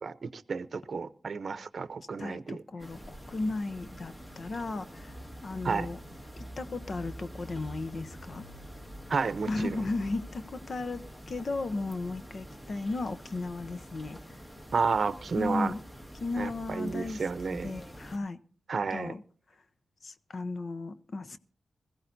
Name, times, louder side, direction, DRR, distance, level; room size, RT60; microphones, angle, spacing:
voice 1, 0.0-2.6 5.6-5.9 9.1-9.8 14.7-15.7 16.4-17.7 18.7-19.1, right 5 dB, 60° right, 0.7 m, -31 dB
voice 2, 2.0-5.2 5.4-6.0 6.4-8.4 9.5-14.4 15.3-15.8 16.2-18.4 18.9-19.2 20.0-21.4, left 3 dB, 55° left, 0.7 m, -35 dB
sound 1, 2.8-18.2, equal, 15° left, 1.7 m, -46 dB
21.0 x 15.0 x 2.6 m
wide cardioid pair, 95°, 0 cm